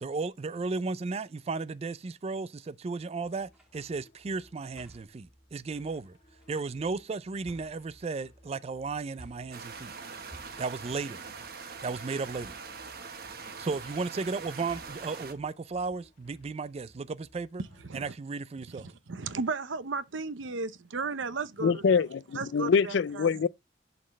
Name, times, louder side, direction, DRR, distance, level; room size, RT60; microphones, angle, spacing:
voice 1, 0.0-6.2 6.5-9.9 10.6-11.3 11.8-12.6 13.6-17.6 17.9-18.9, right 4 dB, 35° right, 0.4 m, -34 dB
sound 1, 3.2-18.0, equal, 40° left, 2.7 m, -62 dB
sound 2, 3.5-3.8 4.7-5.3 6.4-7.0 7.5-8.4 9.2-9.7 10.3-10.9 12.3-12.9 13.2-13.7 14.7-15.2 15.9-16.4, equal, 5° right, 1.7 m, -54 dB
sound 3, 9.5-15.3, right 5 dB, 55° right, 1.2 m, -43 dB
voice 2, 18.8-22.0 22.3-23.5, right 4 dB, 80° right, 0.7 m, -35 dB
voice 3, 21.6-23.5, left 5 dB, 65° left, 0.4 m, -25 dB
11.0 x 4.3 x 3.1 m
head